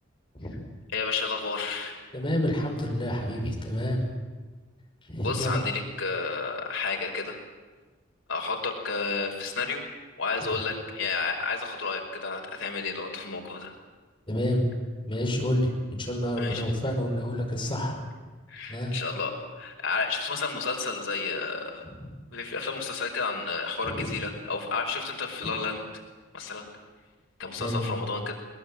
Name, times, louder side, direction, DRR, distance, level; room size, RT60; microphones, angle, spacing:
voice 1, 0.9-2.0 5.2-7.4 8.3-9.8 10.2-13.7 16.4-16.7 18.5-21.8 22.3-25.8 26.3-26.6 27.4-28.3, left 4 dB, 85° left, 1 dB, 5.0 m, -31 dB
voice 2, 2.1-4.0 5.1-5.6 10.5-10.6 14.3-14.7 15.1-18.0 18.7-18.9 21.8-22.1 23.8-24.1 25.4-25.5 27.6-28.0, equal, 25° left, 1 dB, 5.4 m, -29 dB
21.5 x 20.5 x 9.0 m, 1.3 s
head